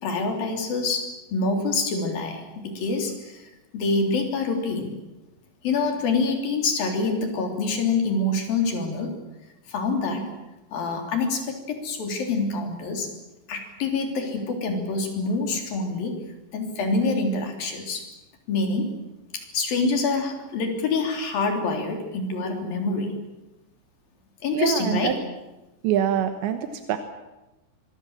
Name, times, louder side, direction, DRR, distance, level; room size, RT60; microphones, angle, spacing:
voice 1, 0.0-4.9 5.6-9.2 9.7-10.3 10.7-13.1 13.5-16.2 16.5-18.0 18.5-18.9 19.3-23.1 24.4-25.2, left 3 dB, 55° left, 3 dB, 5.0 m, -26 dB
voice 2, 24.5-25.1 25.8-26.6 26.9-27.0, right 10 dB, 85° right, 7 dB, 3.5 m, -24 dB
25.0 x 23.5 x 7.4 m, 1.0 s
omnidirectional pair, 5.0 m